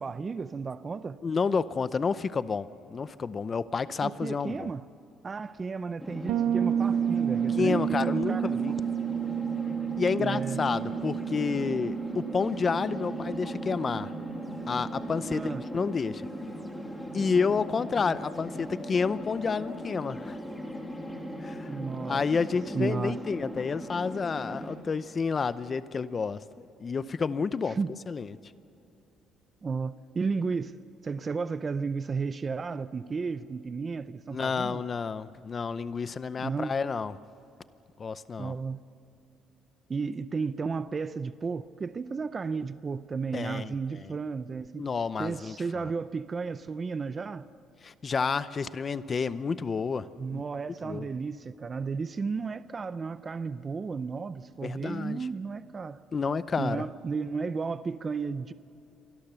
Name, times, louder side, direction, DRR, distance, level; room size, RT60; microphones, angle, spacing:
voice 1, 0.0-1.2 4.0-4.9 5.2-8.8 10.1-10.6 15.3-15.7 21.7-22.2 22.7-23.2 27.7-27.9 29.6-30.8 31.0-34.8 36.4-36.7 38.4-38.8 39.9-44.9 45.2-47.5 50.2-56.0 56.6-58.5, right 5 dB, 25° right, 0.5 m, -33 dB
voice 2, 1.2-4.7 7.6-8.7 10.0-14.1 14.7-16.2 17.1-20.4 21.4-21.7 22.1-27.8 28.1-28.3 34.3-37.1 38.0-38.5 43.3-43.7 44.8-45.5 47.8-50.4 50.8-51.1 54.6-55.2 56.1-56.8, left 5 dB, 25° left, 0.7 m, -30 dB
sound 1, 6.0-24.8, equal, 5° left, 2.8 m, -39 dB
Bass guitar, 6.3-15.9, right 9 dB, 70° right, 0.8 m, -31 dB
28.0 x 24.5 x 6.9 m
cardioid pair, 155°, 0 cm